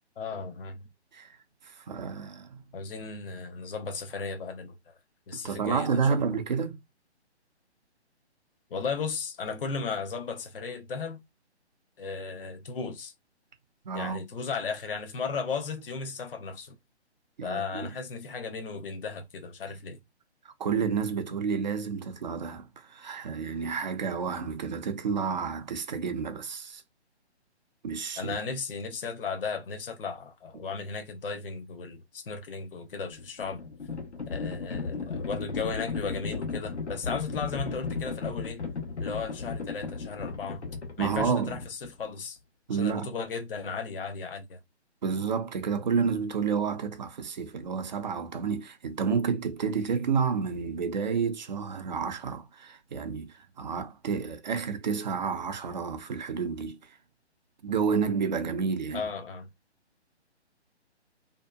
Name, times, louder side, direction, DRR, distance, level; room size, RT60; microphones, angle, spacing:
voice 1, 0.2-0.8 2.7-5.0 5.3-6.2 8.7-11.2 12.0-13.1 13.9-16.8 17.4-20.0 28.2-33.6 34.3-38.6 39.0-40.6 41.0-42.4 42.7-44.6 58.9-59.5, left 5 dB, 55° left, 0.7 m, -35 dB
voice 2, 1.6-2.6 5.3-6.8 13.8-14.2 17.4-17.9 20.4-26.8 27.8-28.4 41.0-41.6 42.7-43.1 45.0-57.0 57.6-59.1, right 6 dB, 40° right, 0.5 m, -30 dB
Livestock farm animals working animals, 33.0-42.1, left 4 dB, 75° left, 1.0 m, -35 dB
2.7 x 2.2 x 2.3 m
figure-of-eight pair, 140°, 34 cm